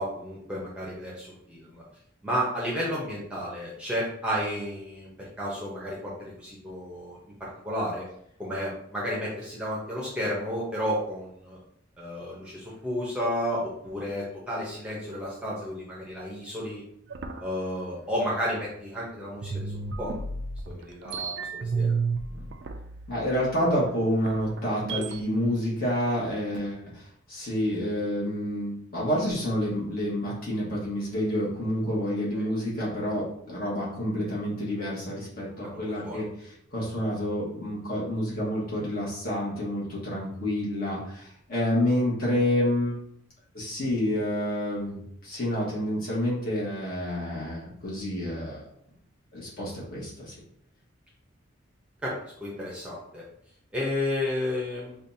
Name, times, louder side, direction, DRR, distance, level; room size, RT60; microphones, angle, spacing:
voice 1, 0.0-1.8 2.2-8.0 8.4-11.6 12.0-16.8 17.4-19.7 20.0-20.2 20.7-21.9 32.3-32.5 35.7-36.2 52.0-52.1 52.4-53.2 53.7-55.0, equal, 5° right, -5 dB, 0.7 m, -32 dB
sound 1, 17.1-19.0 19.4-25.2, right 4 dB, 55° right, 0.3 m, -33 dB
voice 2, 23.1-43.0 43.5-48.6 49.3-50.3, equal, 45° left, -6 dB, 1.4 m, -29 dB
5.0 x 2.4 x 2.7 m, 0.71 s
head